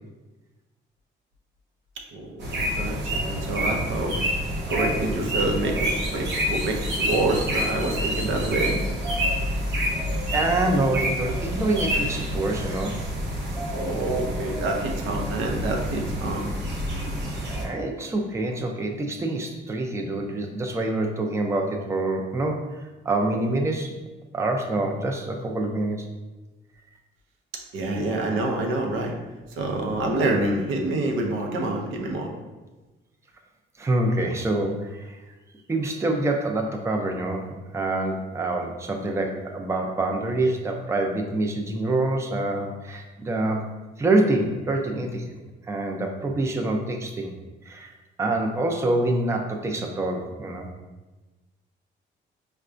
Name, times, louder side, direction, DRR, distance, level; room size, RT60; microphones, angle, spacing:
voice 1, 2.1-4.2 4.7-8.8 13.7-16.5 27.7-29.1 29.6-32.3, right 2 dB, 85° right, 1 dB, 0.6 m, -27 dB
sound 1, 2.4-17.7, equal, 65° right, 0.9 m, -28 dB
voice 2, 10.3-13.0 17.6-24.0 24.3-26.1 33.8-35.2 35.7-45.3 45.7-47.4 47.7-47.9 48.2-50.7, right 2 dB, 15° right, 2 dB, 0.4 m, -26 dB
4.6 x 2.2 x 2.5 m, 1.2 s
cardioid pair, 90°, 20 cm